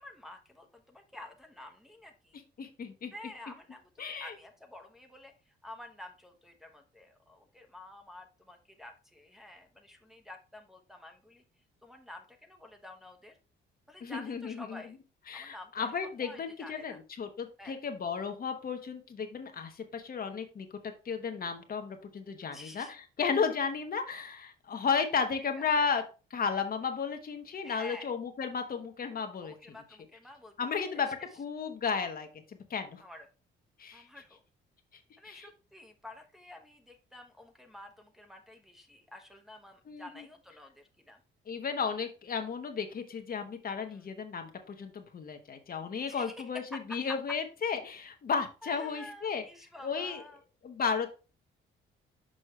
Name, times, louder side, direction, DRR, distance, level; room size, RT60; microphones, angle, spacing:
voice 1, 0.0-2.4 3.1-11.4 11.8-13.4 13.9-15.0 15.3-15.9 16.2-17.0 17.6-17.8 22.5-22.9 25.1-25.2 25.6-25.7 27.6-28.1 29.4-31.0 33.0-33.3 33.9-34.4 35.2-41.2 43.9-44.1 46.1-47.2 48.6-50.4, left 1 dB, ahead, 2 dB, 1.2 m, -49 dB
voice 2, 2.6-3.1 4.0-4.3 14.0-14.8 15.3-26.0 26.3-29.5 30.6-31.1 31.4-33.0 33.8-34.0 35.2-35.5 39.9-40.2 41.5-49.4 49.8-50.2 50.6-51.1, left 5 dB, 45° left, 5 dB, 1.2 m, -34 dB
6.5 x 5.3 x 3.2 m, 0.33 s
cardioid pair, 90°, 20 cm